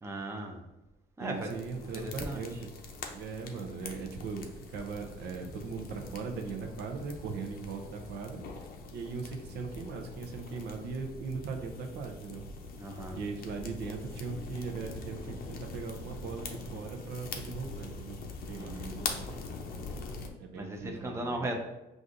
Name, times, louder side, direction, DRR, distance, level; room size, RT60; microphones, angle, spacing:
voice 1, 0.0-0.6 1.2-2.6 12.8-13.2 18.6-19.0 20.5-21.6, right 1 dB, 15° right, 2 dB, 0.6 m, -38 dB
voice 2, 1.2-2.7 3.1-8.4 8.9-12.5 13.1-19.3 20.4-21.6, right 5 dB, 75° right, 3 dB, 0.6 m, -39 dB
sound 1, 1.4-20.3, left 4 dB, 60° left, 0.6 m, -43 dB
5.9 x 2.6 x 2.6 m, 0.97 s
cardioid pair, 110°, 17 cm